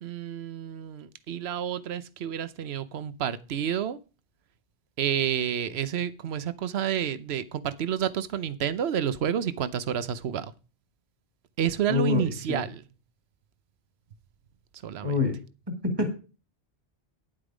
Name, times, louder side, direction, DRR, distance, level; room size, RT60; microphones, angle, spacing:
voice 1, 0.0-4.0 5.0-10.5 11.6-12.8 14.8-15.1, right 9 dB, 70° right, 14 dB, 1.0 m, -29 dB
voice 2, 11.9-12.6 15.0-15.4 15.8-16.2, left 4 dB, 20° right, 5 dB, 2.3 m, -26 dB
9.9 x 8.7 x 5.0 m, 0.33 s
omnidirectional pair, 1.1 m